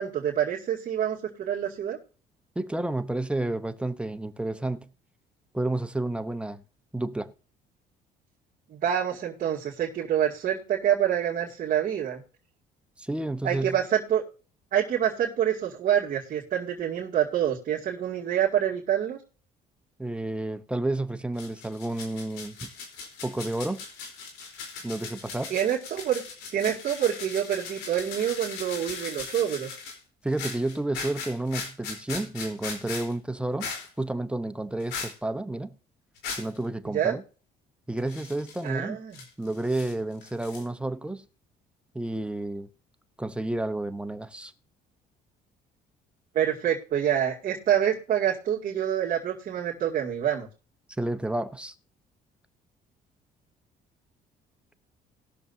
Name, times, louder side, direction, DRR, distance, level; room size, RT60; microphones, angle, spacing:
voice 1, 0.0-2.0 8.7-12.2 13.4-14.2 14.7-19.2 25.5-26.2 26.5-29.7 36.9-37.2 38.6-39.2 46.3-50.5, right 10 dB, 50° right, 2.2 m, -26 dB
voice 2, 2.6-4.9 5.5-6.6 6.9-7.3 13.0-13.8 20.0-22.7 23.2-23.8 24.8-25.5 30.2-33.7 34.0-35.7 36.4-37.2 37.9-39.0 39.4-41.2 41.9-42.7 43.2-44.5 51.0-51.7, right 2 dB, 5° right, 0.8 m, -30 dB
sound 1, 21.4-30.0 30.3-33.1 33.6-33.9 34.8-35.1 36.2-36.6 38.0-38.6 39.1-39.9 40.2-40.6, left 5 dB, 90° left, 3.8 m, -39 dB
20.5 x 6.8 x 2.7 m
cardioid pair, 110°, 17 cm